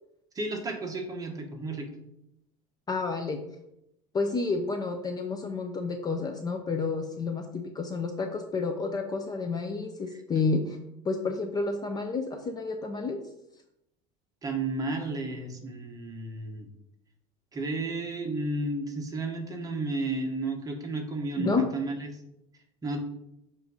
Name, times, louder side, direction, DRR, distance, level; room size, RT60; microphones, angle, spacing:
voice 1, 0.3-1.9 14.4-16.7 17.5-22.2 22.8-23.0, right 2 dB, 20° right, 3 dB, 1.0 m, -32 dB
voice 2, 2.9-3.4 4.1-10.8 11.0-13.2 21.4-21.7, left 4 dB, 20° left, 5 dB, 0.5 m, -30 dB
7.7 x 2.7 x 4.8 m, 0.81 s
supercardioid pair, 130°, 17 cm